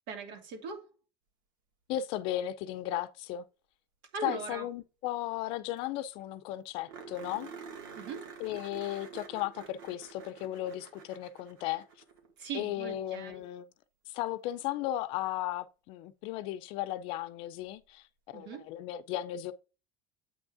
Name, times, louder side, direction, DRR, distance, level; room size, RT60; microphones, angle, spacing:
voice 1, 0.1-0.9 4.1-4.7 7.9-8.3 12.4-13.4 18.3-18.7, right 5 dB, 70° right, 2.7 m, -40 dB
voice 2, 1.9-3.4 4.2-7.5 8.4-11.9 12.5-13.7 14.1-18.0 18.3-19.5, left 13 dB, 55° left, 0.6 m, -35 dB
sound 1, 5.5-5.6 5.8-5.9 6.2-6.3 6.9-12.3 14.6-14.7 17.6-17.7, right 6 dB, 90° right, 2.1 m, -48 dB
8.4 x 3.6 x 4.9 m
cardioid pair, 155°, 11 cm